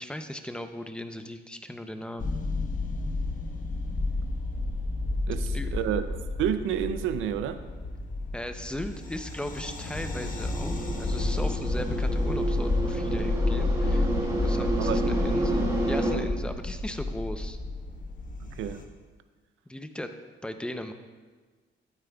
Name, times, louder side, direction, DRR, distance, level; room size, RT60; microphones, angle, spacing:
voice 1, 0.0-2.3 5.5-5.7 8.3-17.6 19.7-20.1 20.4-20.9, left 1 dB, 5° left, 8 dB, 0.6 m, -37 dB
sound 1, 2.2-18.8, left 2 dB, 40° left, 1.1 m, -30 dB
voice 2, 5.3-7.6 14.8-15.0 18.4-18.8, right 9 dB, 85° right, 11 dB, 0.5 m, -30 dB
sound 2, 10.5-16.2, right 2 dB, 15° right, 2.0 m, -30 dB
12.5 x 8.6 x 2.4 m, 1.4 s
cardioid pair, 90°, 20 cm